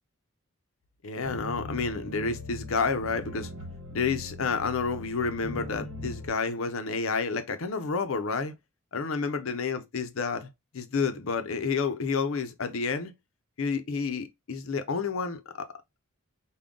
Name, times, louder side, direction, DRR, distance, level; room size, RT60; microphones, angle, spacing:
voice 1, 1.0-3.5 3.9-8.5 8.9-10.5 10.7-13.1 13.6-15.7, left 5 dB, 65° left, 0.6 m, -30 dB
sound 1, 1.2-6.3, left 1 dB, 65° right, 1.1 m, -40 dB
3.7 x 2.2 x 3.5 m
head